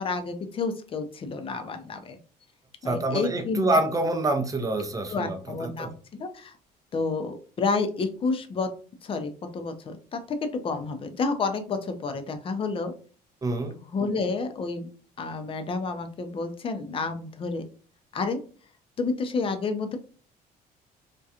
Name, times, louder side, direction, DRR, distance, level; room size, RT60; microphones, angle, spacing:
voice 1, 0.0-2.2 2.8-3.6 5.1-6.5 6.9-8.7 9.0-10.4 10.6-12.9 13.9-14.9 15.2-17.6 18.1-18.4 19.0-20.0, left 4 dB, 35° left, 7 dB, 0.5 m, -30 dB
voice 2, 2.8-5.9 13.4-13.8, right 2 dB, 20° right, 5 dB, 0.5 m, -26 dB
2.4 x 2.2 x 2.7 m, 0.39 s
cardioid pair, 110°, 17 cm